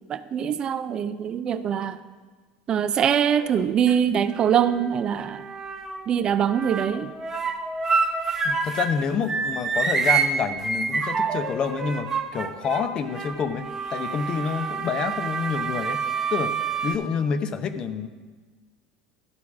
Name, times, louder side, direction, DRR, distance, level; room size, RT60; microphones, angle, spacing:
voice 1, 0.1-2.0 2.7-5.5 6.1-7.1, right 8 dB, 40° right, 12 dB, 0.5 m, -23 dB
sound 1, 3.4-3.9 4.3-6.1 6.5-9.0 9.3-16.9, right 5 dB, 20° right, 1.0 m, -28 dB
voice 2, 8.4-16.0 16.3-16.6 16.8-18.1, left 6 dB, 40° left, 9 dB, 0.8 m, -28 dB
13.0 x 4.7 x 6.0 m, 1.4 s
hypercardioid pair, 75°, 2 cm